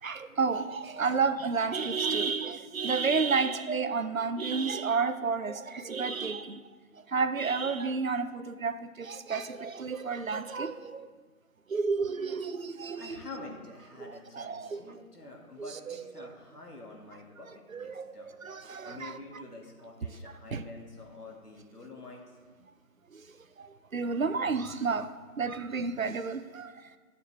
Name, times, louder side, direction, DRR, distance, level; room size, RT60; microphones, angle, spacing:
voice 1, 0.0-6.6 6.9-11.1 11.7-13.2 14.0-14.9 15.6-16.3 17.7-19.4 20.5-20.6 23.1-26.9, right 5 dB, 65° right, 0.6 m, -31 dB
voice 2, 12.9-18.3 18.9-22.2, left 3 dB, 85° left, 2.2 m, -47 dB
12.0 x 6.8 x 3.3 m
figure-of-eight pair, 175°, 45 cm